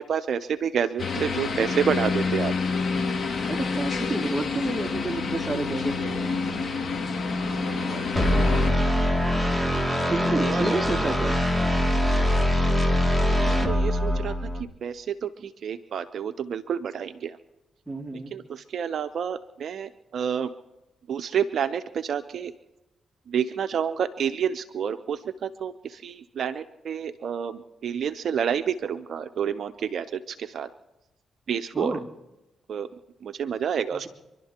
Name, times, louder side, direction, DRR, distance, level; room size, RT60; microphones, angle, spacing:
voice 1, 0.0-2.5 7.7-8.9 10.4-10.8 13.2-17.4 18.3-20.5 21.1-22.5 23.3-30.7 31.5-31.9 32.7-32.9 33.2-34.1, right 8 dB, 65° right, 9 dB, 0.7 m, -29 dB
sound 1, 1.0-8.7, left 4 dB, 50° left, 2.4 m, -28 dB
voice 2, 3.5-6.4 10.1-11.3 17.9-18.3 31.7-32.0 33.9-34.1, right 2 dB, 15° right, 1 dB, 2.7 m, -30 dB
sound 2, 8.2-14.6, left 1 dB, 10° left, 2.6 m, -23 dB
28.0 x 12.0 x 3.0 m, 0.99 s
supercardioid pair, 50°, 0 cm